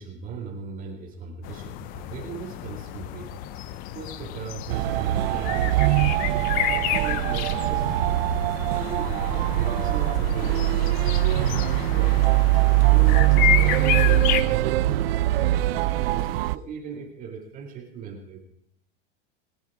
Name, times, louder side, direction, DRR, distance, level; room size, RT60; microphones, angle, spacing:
voice 1, 0.0-3.3 3.9-8.1 8.7-12.2 12.8-18.4, right 6 dB, 30° right, -1 dB, 2.2 m, -38 dB
sound 1, 1.4-14.4, left 12 dB, 30° left, 0.5 m, -31 dB
sound 2, 4.7-16.6, right 16 dB, 80° right, 0.6 m, -22 dB
sound 3, 5.2-10.9, left 6 dB, 75° left, 1.6 m, -40 dB
20.5 x 10.0 x 4.8 m, 0.70 s
supercardioid pair, 155°, 29 cm